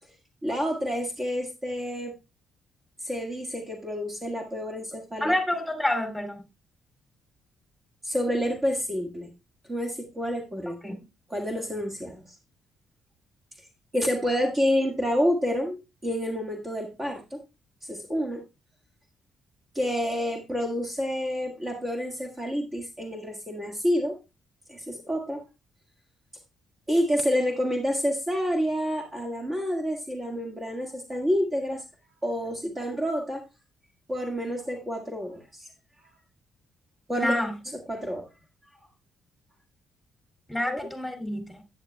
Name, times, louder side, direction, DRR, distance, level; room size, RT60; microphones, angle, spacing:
voice 1, 0.4-2.1 3.0-5.3 8.0-9.3 9.7-10.8 11.3-12.3 13.9-15.8 16.0-17.4 17.8-18.4 19.7-24.2 24.7-25.4 26.9-31.8 32.2-33.4 34.1-35.7 37.1-37.3 37.9-38.3 40.7-40.8, equal, 25° right, 1.7 m, -28 dB
voice 2, 5.2-6.4 10.8-11.0 37.1-37.6 40.5-41.6, left 1 dB, 5° left, 2.6 m, -28 dB
10.5 x 9.1 x 2.2 m
cardioid pair, 90°, 0 cm